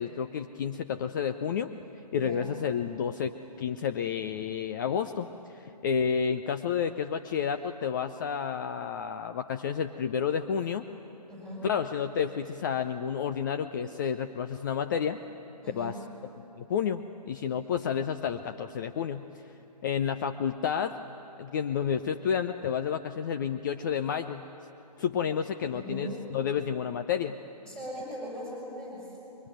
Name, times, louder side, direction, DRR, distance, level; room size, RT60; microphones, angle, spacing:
voice 1, 0.0-1.7 2.1-3.3 3.6-10.8 11.6-15.2 15.8-15.9 16.6-19.2 19.8-21.0 21.4-24.4 25.0-27.4, left 7 dB, 30° left, 8 dB, 0.6 m, -30 dB
voice 2, 2.1-2.5 11.3-11.7 15.6-16.0 25.7-26.2 27.6-29.2, equal, 5° left, -5 dB, 7.1 m, -39 dB
26.5 x 23.0 x 9.1 m, 2.9 s
figure-of-eight pair, 140°, 21 cm